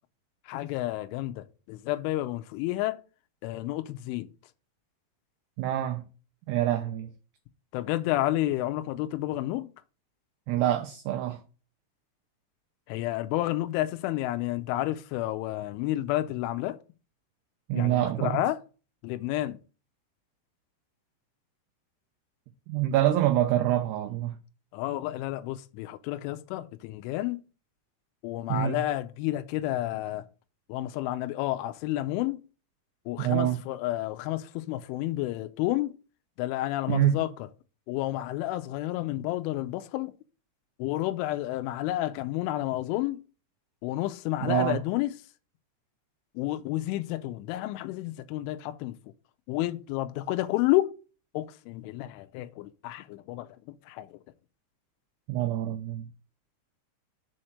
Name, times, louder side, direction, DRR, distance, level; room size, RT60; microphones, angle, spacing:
voice 1, 0.5-3.0 3.4-4.3 7.7-9.7 12.9-16.8 17.7-18.6 19.0-19.6 24.7-27.4 28.2-30.2 30.7-32.4 33.1-36.0 36.4-37.5 37.9-40.1 40.8-43.2 43.8-45.2 46.4-49.0 49.5-50.9 51.3-53.6 53.9-54.2, left 15 dB, 85° left, 3.1 m, -30 dB
voice 2, 5.6-6.1 6.5-7.1 10.5-11.4 17.7-18.4 22.7-24.3 28.5-28.8 33.2-33.6 36.9-37.2 44.4-44.8 55.3-56.1, right 12 dB, 90° right, 2.3 m, -26 dB
7.2 x 4.4 x 6.5 m
omnidirectional pair, 5.5 m